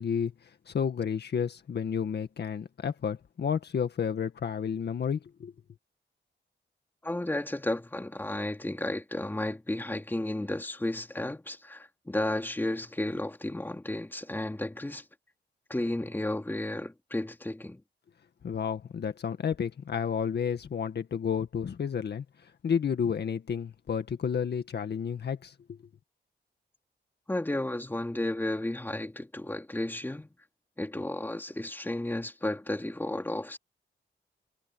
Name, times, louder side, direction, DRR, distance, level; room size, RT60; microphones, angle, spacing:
voice 1, 0.0-5.5 18.4-25.8, left 7 dB, 60° left, 1.9 m, -31 dB
voice 2, 7.0-15.0 15.7-17.8 27.3-30.3 30.8-33.6, left 1 dB, 10° left, 2.8 m, -33 dB
wide cardioid pair, 110°, 19 cm